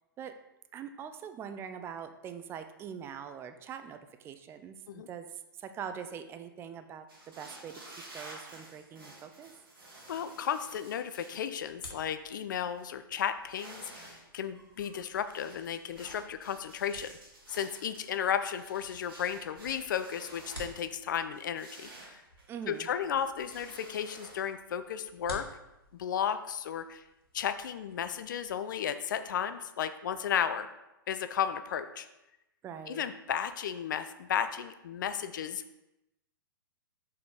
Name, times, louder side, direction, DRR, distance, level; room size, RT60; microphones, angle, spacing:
voice 1, 0.7-7.8 8.1-9.5 22.5-22.9 32.6-33.0, right 7 dB, 20° right, 8 dB, 0.5 m, -43 dB
sound 1, 7.1-11.4 12.0-12.1 12.4-12.9 13.4-14.3 14.5-20.9 21.3-22.8 23.2-24.5, right 2 dB, 75° right, 2.3 m, -51 dB
voice 2, 10.1-17.1 17.5-22.2 22.7-25.5 25.9-27.0 27.3-30.7 31.1-32.1 32.9-35.8, left 8 dB, 55° left, 10 dB, 0.5 m, -34 dB
sound 2, 11.5-28.5, equal, 90° left, 2.3 m, -54 dB
5.7 x 4.1 x 4.9 m, 0.93 s
figure-of-eight pair, 115°, 12 cm